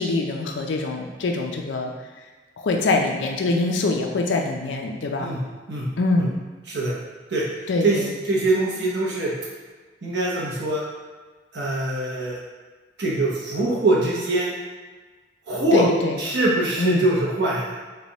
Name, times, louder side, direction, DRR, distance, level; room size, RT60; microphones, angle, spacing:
voice 1, 0.0-1.9 2.6-5.3 6.0-6.4 7.7-8.1 15.7-16.1 16.8-17.0, left 2 dB, 85° left, 2 dB, 0.5 m, -24 dB
voice 2, 7.8-9.3 10.0-10.8 11.5-12.4 13.0-14.5 15.5-15.8 16.2-17.8, right 2 dB, 70° right, -5 dB, 0.9 m, -23 dB
3.3 x 2.3 x 3.9 m, 1.4 s
head